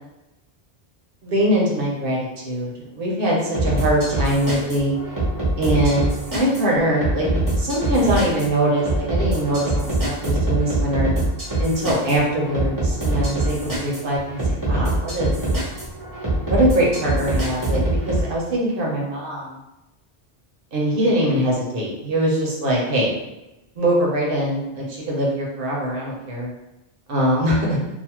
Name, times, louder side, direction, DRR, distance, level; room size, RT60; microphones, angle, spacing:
voice 1, 1.2-5.0 5.6-7.3 7.6-11.1 11.6-15.3 16.5-19.6 20.7-23.1 23.8-26.5 27.1-27.8, right 1 dB, 60° right, -3 dB, 1.0 m, -22 dB
sound 1, 3.5-18.2, right 1 dB, 20° right, 0.9 m, -24 dB
2.6 x 2.4 x 2.9 m, 0.95 s
omnidirectional pair, 1.1 m